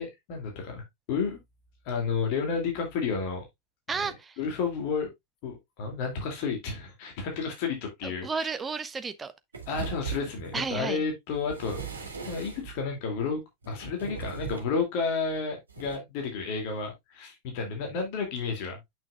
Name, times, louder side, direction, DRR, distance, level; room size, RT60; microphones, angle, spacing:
voice 1, 0.0-1.4 1.8-3.4 4.4-5.1 5.4-8.5 9.7-11.8 12.2-19.0, left 5 dB, 45° left, 2.4 m, -31 dB
voice 2, 3.9-4.4 8.0-9.3 10.5-11.0, right 5 dB, 15° right, 0.8 m, -32 dB
sound 1, 9.5-10.7 11.3-12.8 13.6-14.8 15.7-16.0, right 6 dB, 70° right, 2.1 m, -39 dB
8.8 x 6.1 x 2.3 m
figure-of-eight pair, 90°, 0 cm